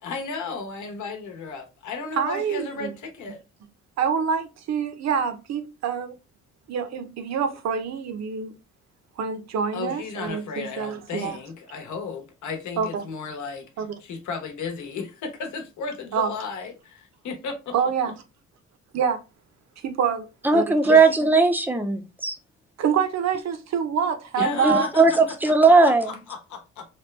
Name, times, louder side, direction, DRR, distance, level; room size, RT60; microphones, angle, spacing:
voice 1, 0.0-3.4 9.7-13.7 14.0-17.7 24.4-25.0 25.8-26.9, left 4 dB, 75° left, 1.0 m, -34 dB
voice 2, 2.2-2.9 4.0-6.1 6.7-8.5 9.2-11.4 12.8-13.0 13.8-13.9 16.1-16.3 17.7-18.1 18.9-19.2 19.8-20.3 20.5-21.0 22.8-24.9, right 7 dB, 60° right, 0.7 m, -26 dB
voice 3, 20.4-22.4 24.6-26.2, right 3 dB, 5° right, 0.5 m, -18 dB
3.0 x 2.2 x 3.2 m
cardioid pair, 90°, 30 cm